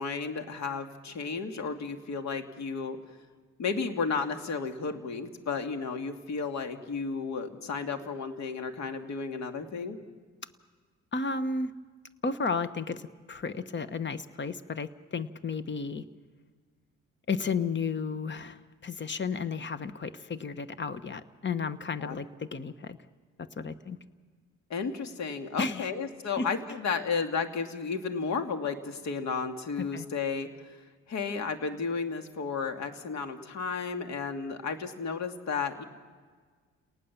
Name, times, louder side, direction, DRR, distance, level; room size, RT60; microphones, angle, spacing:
voice 1, 0.0-3.0 3.6-10.0 22.0-22.2 24.7-30.8 31.1-35.8, left 5 dB, 65° left, 6 dB, 2.3 m, -33 dB
voice 2, 11.1-11.7 12.2-16.0 17.3-23.0 23.4-24.0 25.6-25.9 26.4-26.5 29.9-30.1, left 4 dB, 35° left, 12 dB, 1.3 m, -33 dB
29.5 x 19.0 x 7.2 m, 1.5 s
cardioid pair, 90°, 30 cm